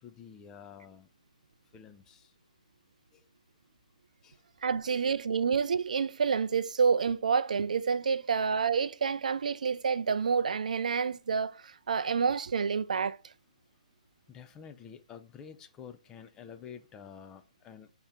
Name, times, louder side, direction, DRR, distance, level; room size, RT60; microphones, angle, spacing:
voice 1, 0.0-1.1 1.7-2.3 3.1-3.3 4.2-4.4 4.8-4.9 14.3-17.9, left 7 dB, 15° left, 0.3 m, -49 dB
voice 2, 4.6-13.2, right 6 dB, 70° right, 0.3 m, -28 dB
3.5 x 2.8 x 4.7 m
hypercardioid pair, 155°, 4 cm